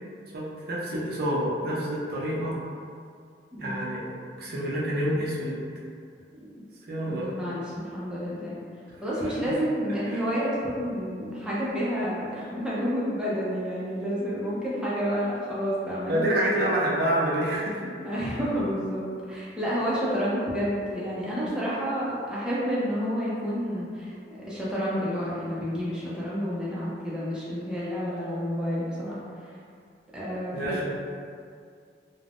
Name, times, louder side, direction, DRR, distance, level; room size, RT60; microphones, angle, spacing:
voice 1, 0.3-2.5 3.6-4.0 4.4-5.6 6.9-7.3 10.1-10.2 16.1-17.9 30.5-30.9, right 1 dB, 55° right, -5 dB, 0.5 m, -27 dB
voice 2, 3.5-3.9 6.3-6.6 7.0-8.6 9.0-16.3 17.9-29.6 30.1-30.9, equal, 5° right, -9 dB, 0.4 m, -30 dB
2.4 x 2.0 x 3.3 m, 2.3 s
head